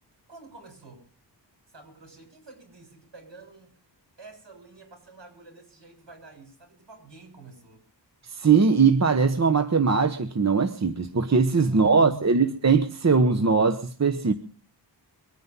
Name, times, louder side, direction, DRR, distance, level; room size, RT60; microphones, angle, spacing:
voice 1, 0.3-1.0 1.7-3.8 4.2-7.8 11.5-12.6, right 4 dB, 70° right, 7.3 m, -47 dB
voice 2, 8.2-14.3, right 5 dB, 40° right, 1.0 m, -21 dB
23.5 x 9.8 x 5.5 m
wide cardioid pair, 85°, 44 cm